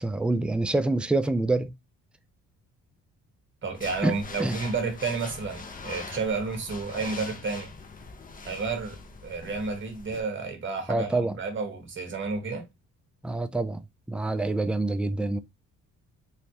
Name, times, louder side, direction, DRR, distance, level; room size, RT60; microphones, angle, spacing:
voice 1, 0.0-1.7 4.0-4.6 10.9-11.3 13.2-13.8 14.1-15.4, right 2 dB, 5° right, 0.4 m, -26 dB
voice 2, 3.6-7.7 8.5-12.7, right 4 dB, 40° right, 1.4 m, -31 dB
sound 1, 3.7-10.2, left 4 dB, 30° left, 0.7 m, -42 dB
3.2 x 3.1 x 2.9 m
cardioid pair, 90°, 30 cm